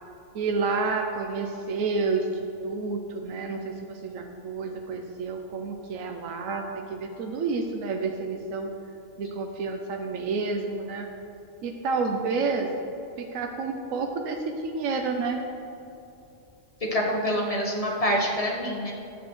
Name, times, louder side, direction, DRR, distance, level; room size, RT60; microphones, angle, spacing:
voice 1, 0.3-2.3 2.6-8.7 9.2-11.1 11.6-12.7 13.2-15.4, right 4 dB, 80° right, 3 dB, 1.0 m, -29 dB
voice 2, 16.9-18.9, equal, 30° left, -2 dB, 1.2 m, -26 dB
11.0 x 8.1 x 3.1 m, 2.8 s
omnidirectional pair, 1.4 m